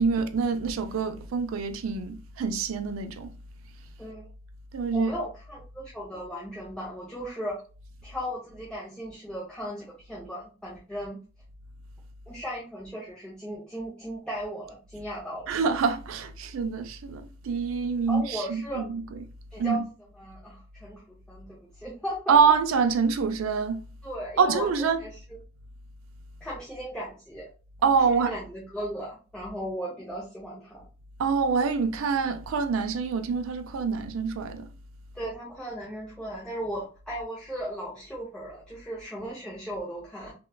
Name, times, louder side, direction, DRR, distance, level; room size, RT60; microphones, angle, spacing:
voice 1, 0.0-3.3 4.7-5.1 15.5-18.9 19.6-19.8 22.3-23.8 24.4-25.0 27.8-28.3 31.2-34.7, right 5 dB, 75° right, 0.4 m, -25 dB
voice 2, 4.0-4.3 4.9-7.6 8.0-11.2 12.3-15.5 18.1-18.9 19.5-19.8 20.1-22.4 24.0-25.4 26.4-27.5 28.0-30.9 35.1-40.3, equal, 5° left, 0.5 m, -36 dB
3.0 x 2.2 x 2.2 m
head